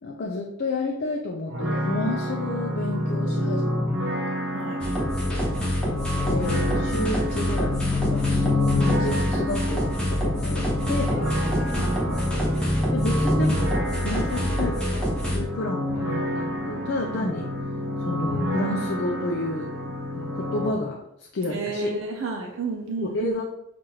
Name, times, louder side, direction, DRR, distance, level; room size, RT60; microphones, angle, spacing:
voice 1, 0.0-3.6 6.2-11.2 12.9-17.7 18.0-19.7 20.2-21.9 23.0-23.5, left 2 dB, 55° left, 0 dB, 0.4 m, -31 dB
sound 1, 1.5-20.7, left 1 dB, 60° right, 1.0 m, -28 dB
voice 2, 3.1-3.5 4.5-4.8 11.2-12.3 17.1-17.2 21.5-23.3, right 3 dB, 75° right, 1 dB, 0.5 m, -33 dB
sound 2, 4.8-15.4, equal, 5° left, 0.9 m, -26 dB
6.2 x 2.5 x 2.8 m, 0.83 s
head